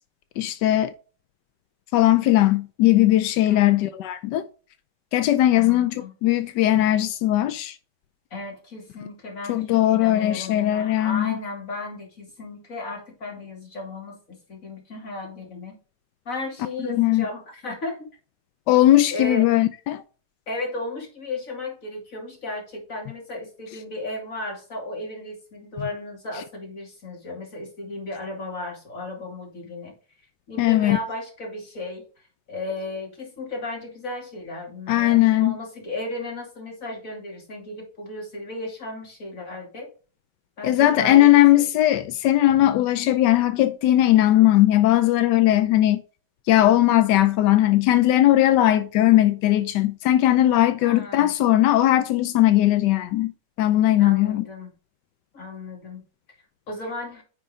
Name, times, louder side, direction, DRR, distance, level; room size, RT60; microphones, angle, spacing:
voice 1, 0.4-0.9 1.9-4.4 5.1-7.8 9.5-11.4 16.9-17.2 18.7-20.0 30.6-31.0 34.9-35.6 40.6-46.0 46.5-53.3 53.6-54.4, left 14 dB, 90° left, 1.2 m, -19 dB
voice 2, 3.4-3.9 5.5-6.1 8.3-15.8 16.2-18.1 19.1-19.5 20.5-29.9 30.5-32.1 32.5-39.9 40.6-41.7 50.8-51.3 54.0-54.7 55.3-56.0 56.7-57.2, left 2 dB, 50° left, 3.1 m, -35 dB
9.8 x 4.8 x 3.6 m
omnidirectional pair, 1.8 m